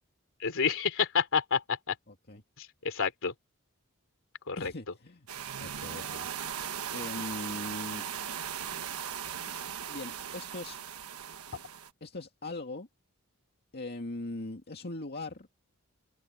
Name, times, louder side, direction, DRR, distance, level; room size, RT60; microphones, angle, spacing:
voice 1, 0.4-1.9 2.6-3.3 4.5-4.7, left 6 dB, 65° left, 3.1 m, -29 dB
voice 2, 2.1-2.4 4.6-5.3 5.6-6.3 6.9-8.0 9.9-10.8 12.0-12.9 13.7-15.5, left 2 dB, 50° left, 2.1 m, -40 dB
sound 1, 5.3-11.9, right 8 dB, 85° right, 1.3 m, -38 dB
head